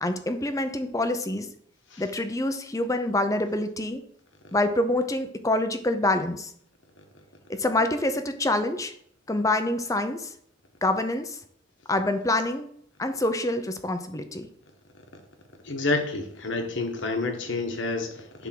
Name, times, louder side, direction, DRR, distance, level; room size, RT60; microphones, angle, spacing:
voice 1, 0.0-1.5 2.0-4.0 4.5-6.5 7.5-8.9 9.3-10.3 10.8-11.4 11.9-12.7 13.0-14.5, left 1 dB, 15° left, 8 dB, 0.6 m, -26 dB
voice 2, 15.6-18.5, left 3 dB, 70° left, 5 dB, 1.4 m, -29 dB
10.5 x 3.6 x 6.1 m, 0.67 s
head